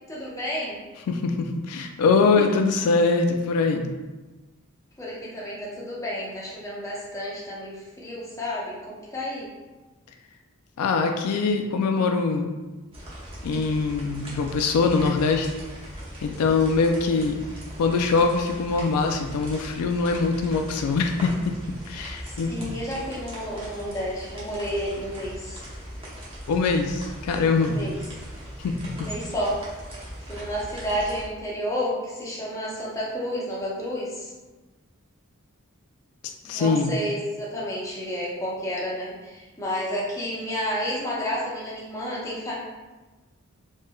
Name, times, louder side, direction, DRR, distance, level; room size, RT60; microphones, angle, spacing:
voice 1, 0.1-0.8 2.4-2.5 5.0-9.5 22.2-25.6 27.6-28.0 29.0-29.6 30.0-34.3 36.4-42.5, equal, 15° left, -6 dB, 0.7 m, -31 dB
voice 2, 1.1-3.9 10.8-12.6 13.4-15.5 16.2-17.4 17.8-21.5 21.9-22.8 26.5-27.8 28.6-28.7 36.5-36.9, left 4 dB, 80° left, 6 dB, 0.3 m, -23 dB
sound 1, 12.9-31.3, equal, 25° right, 0.8 m, -40 dB
3.2 x 3.0 x 2.3 m, 1.2 s
head